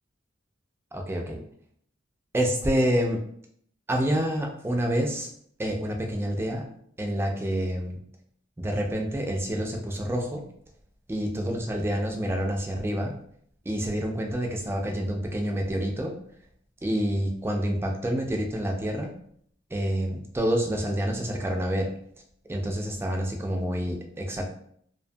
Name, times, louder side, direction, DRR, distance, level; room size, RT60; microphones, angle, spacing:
voice 1, 0.9-1.4 2.3-3.2 3.9-5.3 5.6-6.6 7.0-8.0 8.6-10.5 11.1-13.2 13.7-16.2 16.8-19.2 19.7-21.9 22.5-24.4, equal, 15° right, 2 dB, 0.3 m, -28 dB
2.5 x 2.2 x 2.6 m, 0.65 s
head